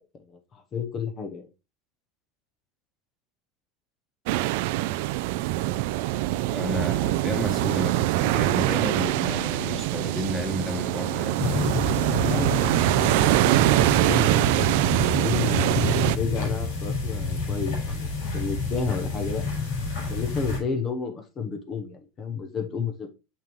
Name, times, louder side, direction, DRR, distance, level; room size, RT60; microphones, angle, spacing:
voice 1, 0.3-1.5 12.2-14.7 15.1-15.7 16.1-18.1 18.3-19.5 20.1-23.1, left 5 dB, 30° left, 0.9 m, -32 dB
sound 1, 4.3-16.2, right 16 dB, 70° right, 0.4 m, -23 dB
voice 2, 6.5-11.4, left 1 dB, 5° left, 1.6 m, -32 dB
Winter afternoon footsteps in snow, 11.4-20.6, left 4 dB, 80° left, 4.8 m, -29 dB
6.9 x 5.7 x 3.1 m
supercardioid pair, 135°, 0 cm